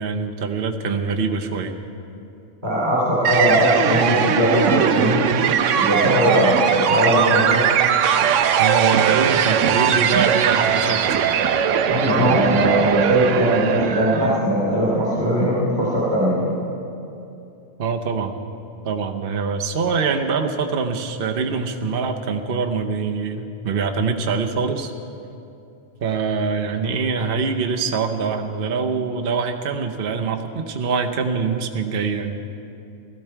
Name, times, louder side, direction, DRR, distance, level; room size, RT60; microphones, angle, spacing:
voice 1, 0.0-1.7 8.6-11.1 17.8-18.3 18.8-24.9 26.0-32.4, right 5 dB, 50° right, 3 dB, 0.9 m, -24 dB
voice 2, 2.6-5.2 5.8-7.6 11.9-16.5, equal, 35° right, -7 dB, 2.8 m, -19 dB
sound 1, 3.2-14.4, right 8 dB, 75° right, 1.0 m, -19 dB
17.0 x 13.5 x 4.5 m, 2.7 s
omnidirectional pair, 1.3 m